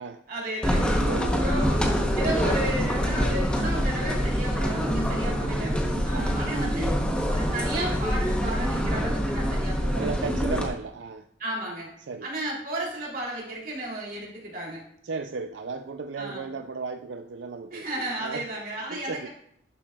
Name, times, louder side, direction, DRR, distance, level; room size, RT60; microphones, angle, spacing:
voice 1, 0.3-1.8 2.1-6.9 7.3-10.1 11.4-11.9 12.2-14.8 16.2-16.4 17.7-19.3, right 1 dB, 50° right, -3 dB, 3.1 m, -33 dB
sound 1, 0.6-10.7, equal, 5° left, 0.8 m, -25 dB
voice 2, 1.1-1.5 6.1-6.3 9.9-11.2 12.1-12.3 15.0-17.9 18.2-18.4 18.9-19.3, right 4 dB, 85° right, 7 dB, 0.4 m, -34 dB
11.5 x 7.1 x 2.3 m, 0.73 s
head